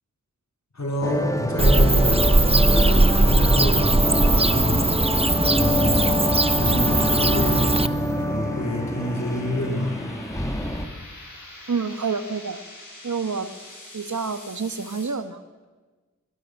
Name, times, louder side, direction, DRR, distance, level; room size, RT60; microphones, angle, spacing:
voice 1, 0.7-6.2 6.6-10.0, left 1 dB, 60° left, 0 dB, 4.2 m, -28 dB
sound 1, 1.0-10.9, left 1 dB, 10° left, 2.3 m, -26 dB
Bird / Cricket, 1.6-7.9, right 2 dB, 20° right, 0.8 m, -19 dB
sound 2, 3.9-15.0, left 1 dB, 85° left, 7.6 m, -45 dB
voice 2, 11.7-12.6 13.0-13.5 13.9-15.4, right 5 dB, 70° right, 11 dB, 1.4 m, -28 dB
22.5 x 22.0 x 6.6 m, 1.3 s
cardioid pair, 40°, 31 cm